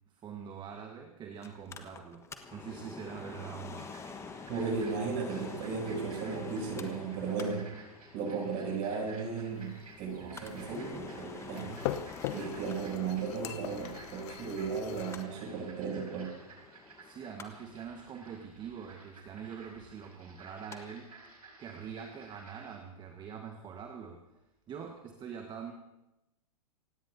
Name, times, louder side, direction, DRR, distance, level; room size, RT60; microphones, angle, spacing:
voice 1, 0.1-3.9 17.0-21.1 21.6-24.2 24.7-25.7, right 7 dB, 25° right, 4 dB, 1.4 m, -44 dB
Mechanical fan, 1.4-20.8 21.1-21.2, left 4 dB, 15° left, 1.3 m, -48 dB
sound 1, 3.8-22.8, right 3 dB, 75° right, 5.7 m, -54 dB
voice 2, 4.5-7.7 8.1-11.7 12.3-16.3, right 5 dB, 40° right, 0 dB, 7.6 m, -35 dB
sound 2, 9.5-15.2, left 13 dB, 45° left, 0.9 m, -42 dB
27.5 x 17.0 x 2.8 m, 0.97 s
figure-of-eight pair, 105°, 20 cm